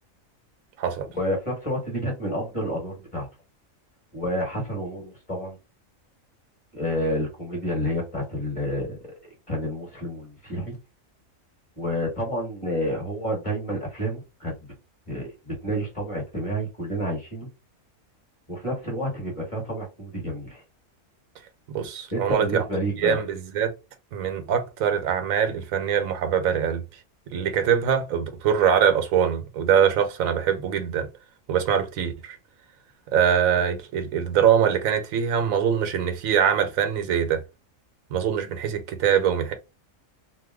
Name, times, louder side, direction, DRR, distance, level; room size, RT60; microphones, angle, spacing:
voice 1, 1.1-3.3 4.1-5.6 6.7-9.0 9.5-10.7 11.8-14.5 15.1-17.5 18.5-20.6 22.1-23.2, equal, 25° left, 1.4 m, -29 dB
voice 2, 21.7-22.6 23.0-23.7 24.1-26.8 27.3-31.1 31.5-32.4 33.1-37.4 38.1-39.5, right 8 dB, 85° right, 1.1 m, -23 dB
2.8 x 2.1 x 3.5 m
omnidirectional pair, 1.4 m